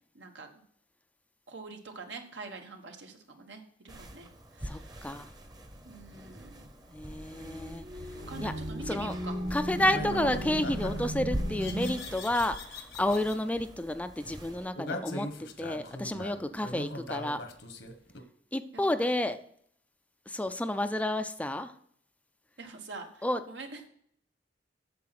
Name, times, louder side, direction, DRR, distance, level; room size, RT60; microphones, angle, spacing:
voice 1, 0.1-0.6 1.5-5.1 5.8-6.6 8.3-9.3 16.1-16.6 18.7-19.1 22.6-23.9, right 3 dB, 75° right, 5 dB, 1.4 m, -45 dB
sound 1, 3.9-14.7, equal, 20° right, 0.9 m, -44 dB
voice 2, 4.6-5.3 6.9-7.8 8.4-8.5 8.9-9.2 9.5-17.4 18.5-19.4 20.3-21.7 23.2-23.4, left 1 dB, 10° left, 10 dB, 0.4 m, -31 dB
sound 2, 6.9-11.9, right 1 dB, 55° right, 2.2 m, -36 dB
sound 3, 8.9-9.1 9.9-11.1 11.6-13.4 14.7-18.2, left 2 dB, 75° left, 1.2 m, -40 dB
8.5 x 7.1 x 5.9 m, 0.66 s
head